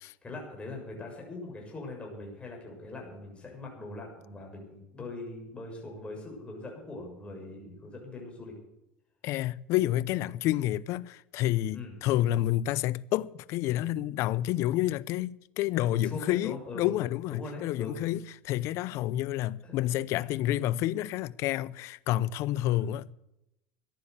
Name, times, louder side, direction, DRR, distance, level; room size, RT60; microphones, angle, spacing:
voice 1, 0.2-8.6 11.7-11.9 16.0-16.9 17.3-18.0 19.6-19.8 20.1-20.2 22.5-23.0, left 2 dB, 20° left, 7.0 m, -42 dB
voice 2, 9.2-23.1, left 14 dB, 60° left, 0.6 m, -29 dB
15.0 x 10.5 x 8.2 m
supercardioid pair, 105°, 5 cm